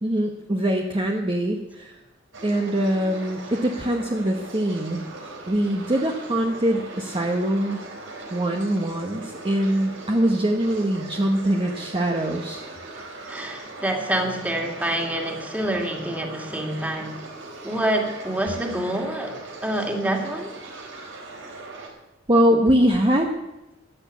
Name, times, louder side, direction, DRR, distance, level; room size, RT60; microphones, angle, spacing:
voice 1, 0.0-2.0 2.4-5.1 5.5-7.9 8.3-12.6 22.3-23.3, right 1 dB, 25° right, 2 dB, 1.1 m, -23 dB
sound 1, 2.3-21.9, right 2 dB, 75° right, 4.5 m, -40 dB
voice 2, 12.9-17.2 17.6-20.5, right 1 dB, 10° right, 2 dB, 2.4 m, -27 dB
14.5 x 10.5 x 8.3 m, 0.98 s
head